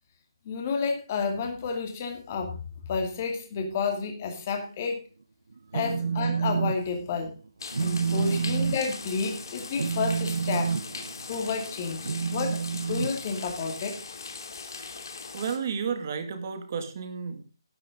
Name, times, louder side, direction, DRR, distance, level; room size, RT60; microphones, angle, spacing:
voice 1, 0.5-2.6 2.9-5.0 5.7-7.3 7.8-10.7 11.3-12.6 12.9-14.0, left 5 dB, 25° left, 3 dB, 2.5 m, -30 dB
Telephone, 5.5-6.8 7.1-7.4 7.7-13.8, right 6 dB, 75° right, 0.9 m, -29 dB
sound 1, 7.6-15.6, left 4 dB, 50° left, 2.8 m, -40 dB
voice 2, 8.1-8.5 14.6-15.0 15.3-17.4, right 6 dB, 30° right, 7 dB, 2.1 m, -33 dB
12.5 x 11.5 x 3.7 m, 0.34 s
hypercardioid pair, 175°, 3 cm